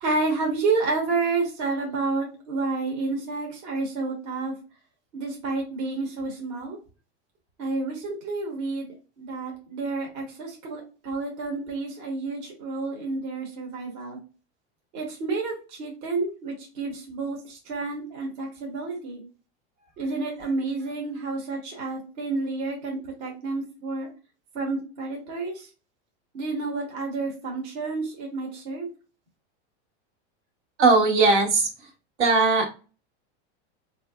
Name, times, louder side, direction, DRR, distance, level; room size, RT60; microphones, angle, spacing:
voice 1, 0.0-4.5 5.1-6.8 7.6-14.2 14.9-19.2 20.0-24.1 24.5-25.7 26.3-28.9, right 3 dB, 40° right, 0 dB, 1.0 m, -30 dB
voice 2, 30.8-31.7 32.2-32.7, right 3 dB, 80° right, 1 dB, 1.4 m, -19 dB
4.0 x 2.6 x 2.2 m, 0.33 s
supercardioid pair, 180°, 34 cm